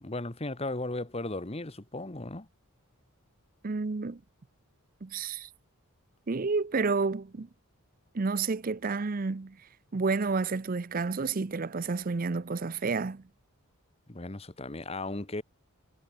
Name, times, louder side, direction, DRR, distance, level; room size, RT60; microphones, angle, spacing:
voice 1, 0.0-2.5 14.1-15.4, left 2 dB, 25° left, 1.2 m, -36 dB
voice 2, 3.6-4.2 5.0-5.5 6.3-7.5 8.1-9.6 9.9-13.2, right 4 dB, 40° right, 0.5 m, -30 dB
head